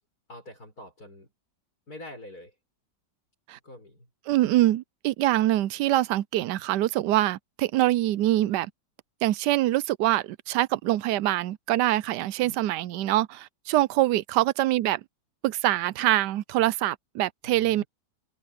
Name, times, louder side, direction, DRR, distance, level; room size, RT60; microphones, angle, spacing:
voice 1, 0.3-1.3 1.9-2.6 3.6-4.1 12.4-12.6 14.3-14.5 17.4-17.9, left 1 dB, 55° left, 7.2 m, -45 dB
voice 2, 4.3-8.7 9.2-15.0 15.4-17.8, right 15 dB, 75° right, 1.1 m, -24 dB
omnidirectional pair, 1.9 m